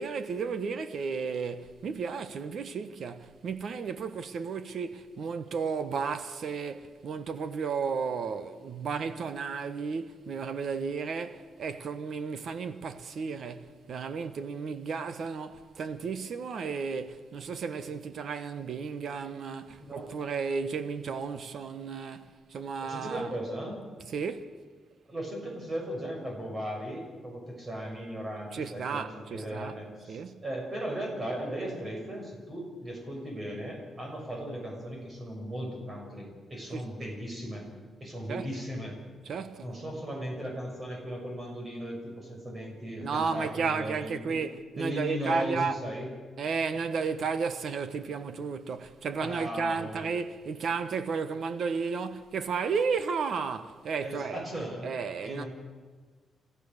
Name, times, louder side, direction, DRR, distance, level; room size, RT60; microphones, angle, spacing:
voice 1, 0.0-23.3 24.1-24.5 28.5-29.8 30.1-30.4 36.7-36.8 38.3-38.5 39.2-39.7 43.0-45.8 46.4-54.4 54.8-55.4, right 5 dB, 55° right, 1.3 m, -33 dB
voice 2, 22.8-23.8 25.1-37.7 38.0-39.0 39.6-44.4 44.7-46.1 49.2-50.0 54.0-54.9 55.2-55.5, equal, 25° right, 5.9 m, -37 dB
28.5 x 15.0 x 6.7 m
wide cardioid pair, 155°, 0 cm